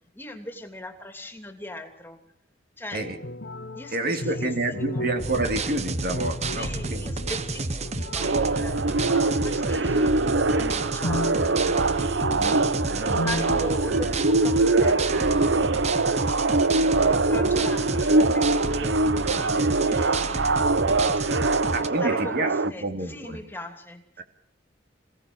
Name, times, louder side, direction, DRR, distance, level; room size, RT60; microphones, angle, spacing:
voice 1, 0.1-2.2 2.8-3.1 3.7-5.0 6.5-10.2 10.6-11.6 13.2-15.9 16.3-16.4 17.1-20.7 21.2-21.3 21.8-24.2, left 1 dB, 10° left, 6 dB, 2.9 m, -39 dB
sound 1, 3.0-13.6, left 1 dB, 65° left, 1.1 m, -35 dB
voice 2, 3.9-7.0 12.4-13.4 21.7-23.4 24.2-24.3, right 2 dB, 55° right, 7 dB, 2.6 m, -29 dB
sound 2, 5.2-21.9, right 3 dB, 35° right, 1.1 m, -31 dB
sound 3, 8.2-22.7, right 3 dB, 75° right, 0.8 m, -23 dB
27.5 x 17.5 x 6.4 m, 0.72 s
head